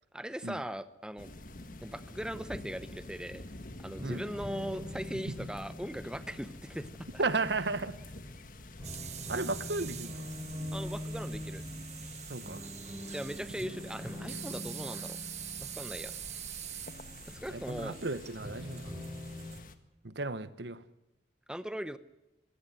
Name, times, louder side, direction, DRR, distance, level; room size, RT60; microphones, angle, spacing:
voice 1, 0.1-1.3 1.8-3.4 3.8-7.2 10.7-11.6 13.1-15.2 15.6-16.1 17.3-18.0 21.5-22.0, equal, 5° right, 0.8 m, -39 dB
sound 1, 1.2-19.8, left 2 dB, 50° left, 1.7 m, -48 dB
sound 2, 1.4-2.6 4.0-8.0 8.8-17.6 18.4-19.5, left 1 dB, 20° right, 5.1 m, -44 dB
voice 2, 7.2-8.0 9.3-10.3 12.3-12.7 17.5-18.9 20.0-20.8, right 3 dB, 75° right, 1.2 m, -34 dB
sound 3, 8.8-19.6, right 10 dB, 40° right, 1.3 m, -45 dB
21.5 x 16.5 x 7.7 m
head